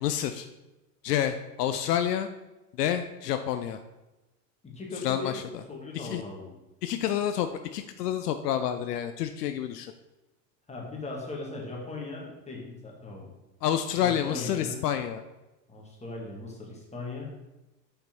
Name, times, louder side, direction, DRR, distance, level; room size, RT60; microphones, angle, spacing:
voice 1, 0.0-0.5 1.0-2.3 2.8-3.8 5.0-5.6 5.9-6.2 6.8-9.9 13.6-15.2, left 10 dB, 70° left, 8 dB, 0.6 m, -29 dB
voice 2, 4.6-5.4 5.7-6.5 10.7-13.3 14.0-14.9 15.7-17.3, left 3 dB, 15° left, -1 dB, 1.9 m, -38 dB
5.8 x 5.3 x 4.4 m, 1.0 s
hypercardioid pair, 100°, 50 cm